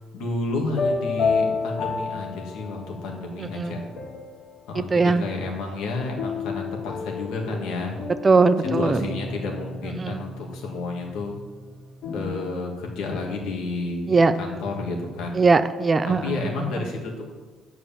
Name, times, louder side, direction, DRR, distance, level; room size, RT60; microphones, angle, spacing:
voice 1, 0.0-3.9 4.7-8.0 8.7-11.4 12.1-15.4 16.0-17.3, left 3 dB, 90° left, 0 dB, 2.1 m, -31 dB
sound 1, 0.7-3.1 3.6-4.6 6.2-12.3, left 4 dB, 55° left, 1.5 m, -31 dB
voice 2, 4.9-5.2 8.2-9.1 10.0-10.2 14.1-14.3 15.4-16.4, right 4 dB, 25° right, 12 dB, 0.4 m, -19 dB
9.6 x 4.8 x 7.3 m, 1.4 s
cardioid pair, 135°, 0 cm